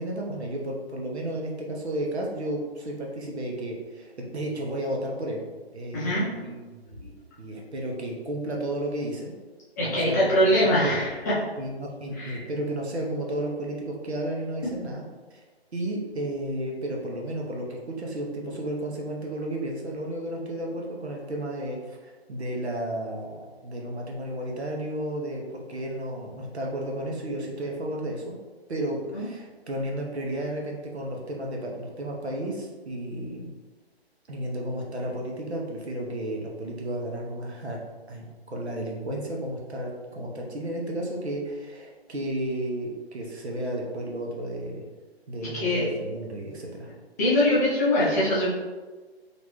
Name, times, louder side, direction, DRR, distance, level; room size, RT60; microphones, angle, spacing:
voice 1, 0.0-5.4 5.7-9.3 9.8-11.0 11.6-15.1 15.7-28.4 28.7-33.5 34.3-37.8 38.1-44.9 45.3-46.9, right 1 dB, 80° right, -1 dB, 0.9 m, -33 dB
voice 2, 9.8-11.3 12.2-12.4 29.1-29.2 45.5-45.9 47.2-48.5, left 1 dB, 15° left, -9 dB, 0.5 m, -22 dB
3.0 x 2.6 x 3.0 m, 1.3 s
figure-of-eight pair, 140°, 32 cm